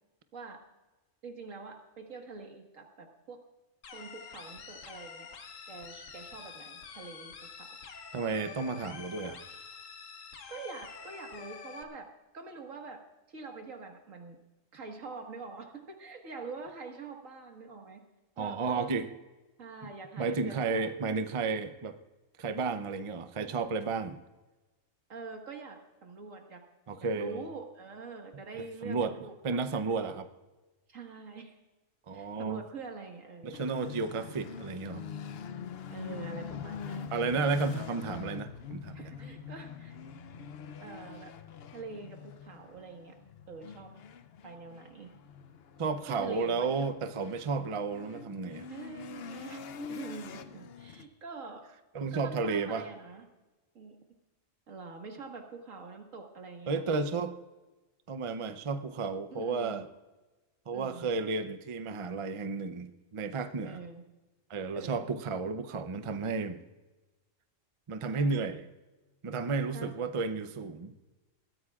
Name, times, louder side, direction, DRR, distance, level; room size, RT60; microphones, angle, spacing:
voice 1, 1.2-3.4 3.9-5.3 5.7-7.7 10.5-12.1 12.3-13.0 13.3-14.4 14.7-18.0 18.4-18.9 19.6-20.9 25.1-26.6 27.2-30.0 30.9-31.5 32.1-33.8 35.9-37.2 38.9-40.0 40.8-41.3 41.7-43.2 43.5-43.9 44.4-45.1 46.1-46.9 48.7-51.6 52.1-53.2 53.8-54.0 54.7-56.9 59.3-59.9 60.7-61.1 63.6-64.0 64.7-65.1 68.1-68.4 69.7-69.9, right 4 dB, 80° right, 2 dB, 2.1 m, -45 dB
sound 1, 3.8-11.8, left 5 dB, 75° left, 1.4 m, -47 dB
voice 2, 8.1-9.4 18.4-19.1 20.2-22.0 22.4-24.2 26.9-27.4 28.8-29.1 29.4-30.3 32.1-32.6 33.4-35.0 37.1-39.1 45.8-48.7 51.9-52.8 56.7-57.4 58.1-59.9 60.7-63.8 64.5-66.6 67.9-68.7 69.2-70.9, right 4 dB, 35° right, 10 dB, 0.5 m, -32 dB
sound 2, 33.5-51.0, left 6 dB, 55° left, 0.8 m, -44 dB
20.5 x 14.0 x 2.4 m, 1.1 s
omnidirectional pair, 1.3 m